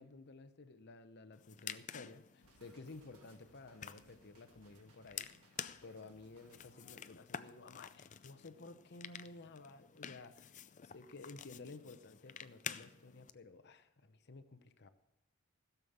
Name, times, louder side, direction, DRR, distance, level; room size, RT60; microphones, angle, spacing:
voice 1, 0.0-5.6 5.8-10.6 10.8-14.9, left 3 dB, 50° left, 10 dB, 0.8 m, -54 dB
sound 1, 1.3-13.3, left 9 dB, 35° left, 0.4 m, -50 dB
sound 2, 2.4-6.7, right 3 dB, 90° right, 1.7 m, -68 dB
16.0 x 7.0 x 7.2 m, 0.87 s
head